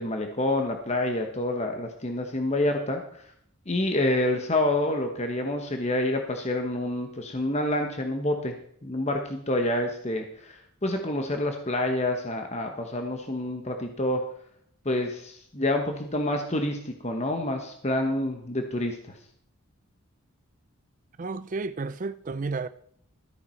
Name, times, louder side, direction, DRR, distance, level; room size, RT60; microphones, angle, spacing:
voice 1, 0.0-3.3 3.7-8.5 8.8-14.2 14.8-19.2, left 1 dB, 30° left, 1.1 m, -28 dB
voice 2, 21.2-22.7, right 3 dB, 35° right, 0.4 m, -32 dB
13.5 x 9.7 x 4.5 m
head